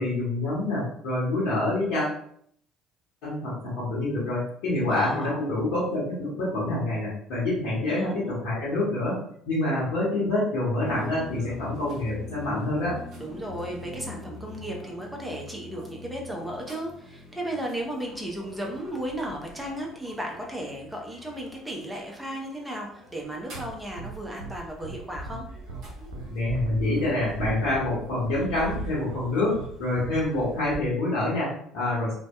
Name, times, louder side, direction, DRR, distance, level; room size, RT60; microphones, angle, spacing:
voice 1, 0.0-2.2 3.2-9.2 9.5-13.0 26.3-32.1, left 2 dB, 65° left, -8 dB, 0.8 m, -27 dB
voice 2, 4.9-5.4 7.9-8.3 13.2-25.5, right 1 dB, 10° right, -1 dB, 0.6 m, -35 dB
sound 1, 10.8-30.8, equal, 55° right, 1.0 m, -43 dB
sound 2, 23.5-23.7 24.0-24.1 24.4-24.5 24.8-25.0 25.3-25.4 25.7-25.8 26.1-26.2 26.5-27.1 27.4-27.5 27.8-28.0 28.3-28.4 28.7-28.8 29.1-29.2 29.5-29.7 30.0-30.2, right 4 dB, 80° right, 0.3 m, -39 dB
2.7 x 2.1 x 2.2 m, 0.65 s
hypercardioid pair, 55°, 0 cm